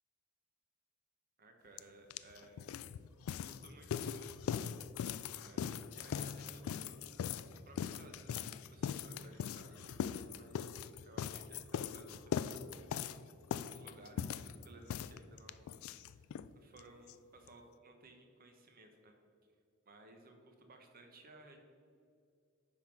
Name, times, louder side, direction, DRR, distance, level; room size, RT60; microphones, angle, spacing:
voice 1, 1.4-2.7 3.4-4.3 5.4-7.2 7.6-12.9 13.7-15.7 16.1-16.2 16.5-19.1 19.9-21.6, right 2 dB, 45° right, 4 dB, 1.0 m, -59 dB
sound 1, 1.8-1.9 2.1-16.5 16.8-16.9 17.1-17.2 17.5-17.6, left 8 dB, 70° left, 0.3 m, -40 dB
9.8 x 3.8 x 6.0 m, 2.4 s
head